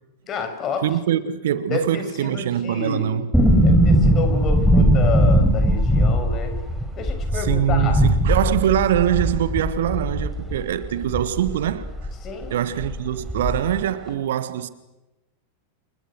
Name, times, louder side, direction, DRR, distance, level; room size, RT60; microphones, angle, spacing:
voice 1, 0.3-0.8 1.7-3.2 3.6-6.6 6.9-8.0 12.2-12.5, left 4 dB, 30° left, 6.9 m, -29 dB
voice 2, 0.8-3.3 7.3-12.1 12.5-14.7, right 10 dB, 60° right, 1.5 m, -23 dB
sound 1, 3.3-12.2 12.4-12.5 12.8-13.8 14.1-14.2, equal, ahead, 5.2 m, -19 dB
29.5 x 29.0 x 6.4 m
figure-of-eight pair, 90°, 0 cm